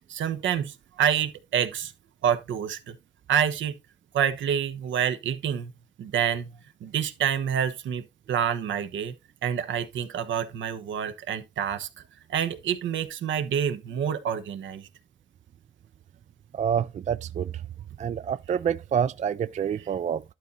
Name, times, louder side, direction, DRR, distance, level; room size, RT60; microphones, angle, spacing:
voice 1, 0.0-1.9 2.2-3.0 3.3-3.8 4.1-5.7 6.0-9.1 9.4-11.9 12.3-14.9, right 8 dB, 70° right, 1.2 m, -27 dB
voice 2, 16.5-17.5 18.0-20.2, right 8 dB, 35° right, 0.4 m, -27 dB
11.5 x 4.2 x 3.9 m
cardioid pair, 90°, 20 cm